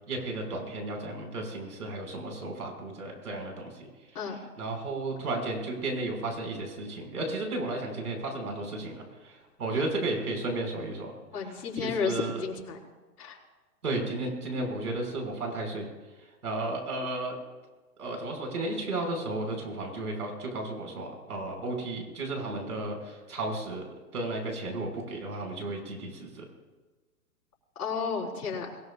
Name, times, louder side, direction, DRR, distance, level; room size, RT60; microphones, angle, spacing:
voice 1, 0.1-3.9 4.6-11.1 11.4-12.4 13.8-15.9 16.4-17.4 18.0-23.9 24.1-26.4, right 2 dB, 85° right, 2 dB, 6.1 m, -33 dB
voice 2, 11.3-12.8 13.2-13.4 27.7-28.7, left 5 dB, 85° left, -3 dB, 4.9 m, -32 dB
22.5 x 18.5 x 2.5 m, 1.3 s
hypercardioid pair, 160°, 45 cm